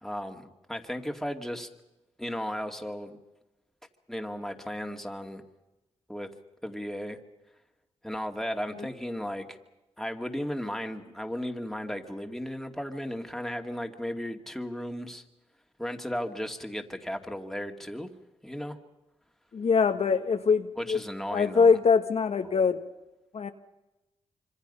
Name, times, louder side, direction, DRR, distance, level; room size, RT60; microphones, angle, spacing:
voice 1, 0.0-1.7 2.2-3.2 4.1-5.4 6.1-6.3 6.6-7.2 8.0-9.6 10.0-15.2 15.8-18.1 18.4-18.8 20.8-21.8 22.4-22.6, equal, ahead, 4 dB, 2.5 m, -35 dB
voice 2, 19.5-21.0 21.3-22.8 23.3-23.5, left 5 dB, 60° left, 6 dB, 1.4 m, -23 dB
26.0 x 25.5 x 5.6 m, 1.0 s
cardioid pair, 65°, 12 cm